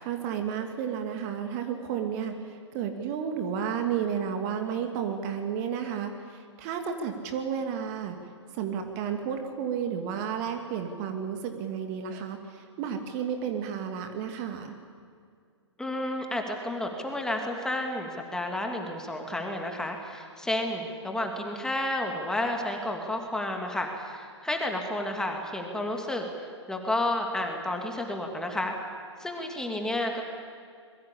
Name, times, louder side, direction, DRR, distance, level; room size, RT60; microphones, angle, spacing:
voice 1, 0.0-8.2 8.5-14.8, right 7 dB, 35° right, 5 dB, 2.6 m, -32 dB
voice 2, 15.8-28.7 29.2-30.2, left 1 dB, 5° left, 2 dB, 2.7 m, -31 dB
26.0 x 22.0 x 8.7 m, 2.2 s
figure-of-eight pair, 115°, 15 cm